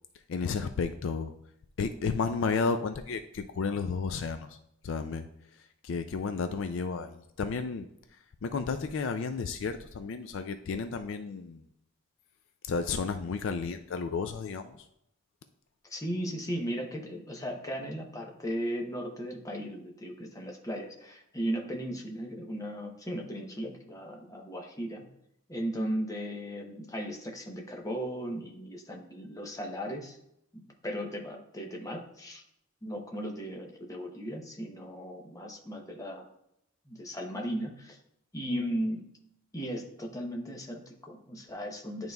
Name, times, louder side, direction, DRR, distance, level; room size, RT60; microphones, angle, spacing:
voice 1, 0.3-1.3 1.8-4.6 4.8-5.3 5.8-7.9 8.4-11.6 12.7-14.9, left 5 dB, 65° left, 8 dB, 0.4 m, -32 dB
voice 2, 15.9-25.1 25.5-30.2 30.8-32.4 32.8-36.3 36.9-38.0 38.3-39.1 39.5-42.1, equal, 15° left, 1 dB, 0.8 m, -36 dB
10.5 x 3.9 x 2.3 m, 0.76 s
head